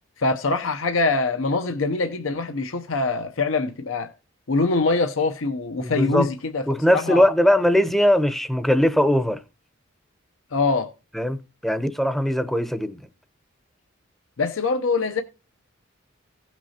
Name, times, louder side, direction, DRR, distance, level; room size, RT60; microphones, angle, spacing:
voice 1, 0.2-4.1 4.5-6.7 6.9-7.3 10.5-10.9 14.4-15.2, left 3 dB, 75° left, 0.7 m, -23 dB
voice 2, 5.8-6.3 6.7-9.4 11.1-11.4 11.6-13.0, equal, ahead, 0.6 m, -20 dB
16.5 x 6.0 x 2.8 m
head